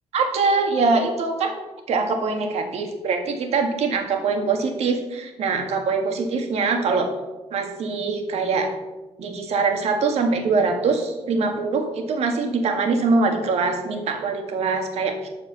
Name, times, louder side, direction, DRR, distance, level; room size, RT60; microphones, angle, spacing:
voice 1, 0.1-1.5 1.9-7.1 7.5-8.7 9.2-15.3, right 4 dB, 70° right, 4 dB, 1.8 m, -23 dB
13.0 x 4.9 x 6.7 m, 1.1 s
cardioid pair, 155°, 11 cm